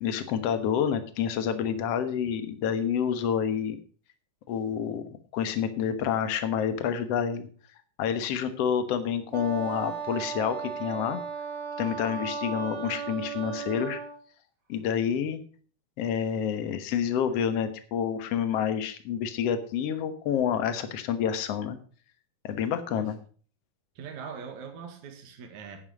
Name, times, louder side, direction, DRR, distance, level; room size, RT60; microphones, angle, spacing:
voice 1, 0.0-3.8 4.5-5.0 5.3-7.5 8.0-11.2 11.8-14.0 14.7-15.4 16.0-21.8 22.4-23.2, left 8 dB, 60° left, 10 dB, 2.1 m, -28 dB
Wind instrument woodwind instrument, 9.3-14.2, right 6 dB, 45° right, 3.4 m, -35 dB
voice 2, 24.0-25.8, right 6 dB, 65° right, 5 dB, 3.1 m, -42 dB
11.0 x 9.7 x 5.1 m, 0.43 s
omnidirectional pair, 3.7 m